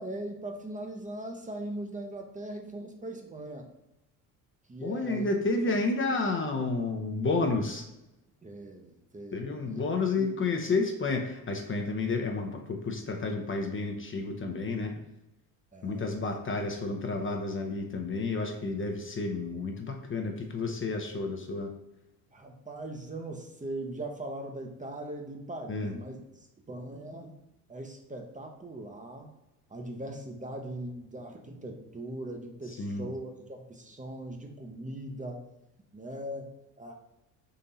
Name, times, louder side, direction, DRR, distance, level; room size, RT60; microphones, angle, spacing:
voice 1, 0.0-3.7 4.7-5.3 8.4-9.8 10.2-10.3 15.7-16.2 22.3-27.3 27.7-29.3 29.7-35.4 35.9-36.9, right 1 dB, 20° right, 2 dB, 0.7 m, -40 dB
voice 2, 4.8-7.9 9.3-15.0 15.8-21.7 25.7-25.9 32.7-33.1, left 3 dB, 30° left, 3 dB, 0.7 m, -31 dB
3.9 x 2.8 x 4.0 m, 0.91 s
hypercardioid pair, 65°, 43 cm